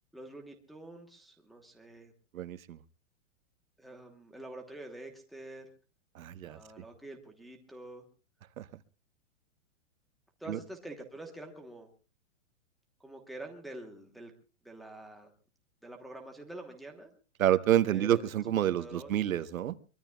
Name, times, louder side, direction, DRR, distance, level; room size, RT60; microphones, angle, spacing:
voice 1, 0.1-2.1 3.8-5.7 6.4-8.0 10.4-11.9 13.0-14.3 14.6-15.3 15.8-17.1 17.9-18.2 18.8-19.3, right 1 dB, ahead, 1 dB, 1.1 m, -46 dB
voice 2, 2.3-2.8 6.1-6.8 8.6-8.7 10.5-10.6 17.4-19.7, right 11 dB, 85° right, 14 dB, 1.1 m, -28 dB
23.0 x 22.0 x 2.3 m, 0.34 s
hypercardioid pair, 175°, 40 cm